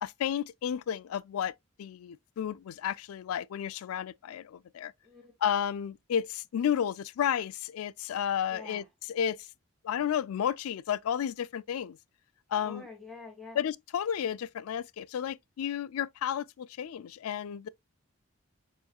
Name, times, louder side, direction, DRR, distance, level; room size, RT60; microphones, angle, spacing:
voice 1, 0.0-1.5 1.8-4.9 5.4-8.8 9.1-9.4 9.8-12.0 12.5-12.8 13.6-17.7, left 9 dB, 90° left, 0.3 m, -32 dB
voice 2, 5.0-5.4 8.5-8.9 12.6-13.6, left 3 dB, ahead, 1.6 m, -47 dB
6.9 x 3.0 x 2.2 m
head